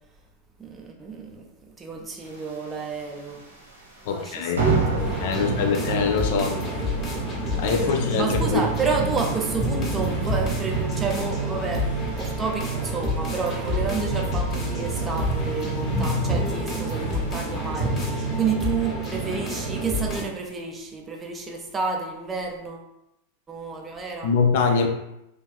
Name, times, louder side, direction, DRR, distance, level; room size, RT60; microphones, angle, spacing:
voice 1, 0.6-1.5 1.8-3.4 4.1-5.5 6.2-6.6 7.8-22.9 23.5-24.3, right 4 dB, 20° right, 1 dB, 0.4 m, -30 dB
sound 1, 2.4-3.3 3.6-3.8 4.1-4.3 4.6-18.5, right 2 dB, 85° right, 0.8 m, -30 dB
voice 2, 4.1-4.7 5.2-6.6 7.5-8.6 24.2-24.9, left 5 dB, 50° left, 4 dB, 0.4 m, -23 dB
sound 2, 5.0-20.2, equal, 25° left, 0.7 m, -29 dB
2.6 x 2.3 x 2.2 m, 0.86 s
figure-of-eight pair, 90°, 0 cm